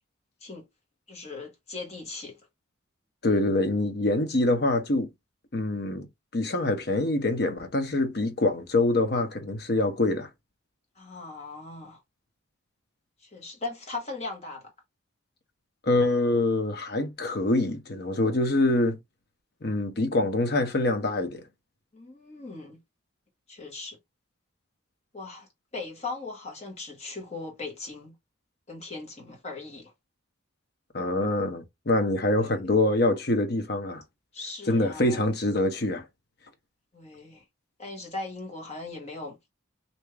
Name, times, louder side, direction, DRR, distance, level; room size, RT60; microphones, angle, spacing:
voice 1, 1.1-2.4 11.0-12.0 13.2-14.7 21.9-22.8 23.5-24.0 25.1-25.5 25.7-28.1 28.7-29.9 32.4-32.6 34.3-35.2 36.9-37.4 37.8-39.5, left 3 dB, 35° left, 1.3 m, -39 dB
voice 2, 3.2-5.1 5.5-6.1 6.3-10.3 15.9-19.0 19.6-21.4 30.9-34.0 34.7-36.0, left 2 dB, 50° left, 0.8 m, -25 dB
3.4 x 2.7 x 3.3 m
head